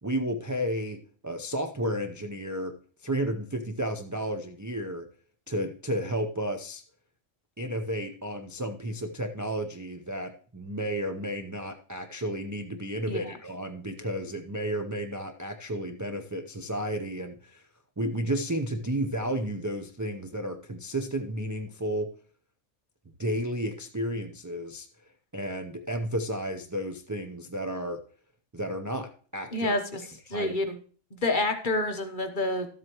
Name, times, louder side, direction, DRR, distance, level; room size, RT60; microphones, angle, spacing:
voice 1, 0.0-2.7 3.0-5.1 5.5-6.8 7.6-17.6 18.0-22.1 23.2-24.9 25.3-28.0 28.5-29.7 30.3-30.6, right 1 dB, 25° right, 4 dB, 0.4 m, -32 dB
voice 2, 29.5-30.0 30.3-30.8 31.1-32.7, left 2 dB, 40° left, 6 dB, 1.1 m, -28 dB
12.5 x 7.8 x 3.0 m, 0.41 s
omnidirectional pair, 1.3 m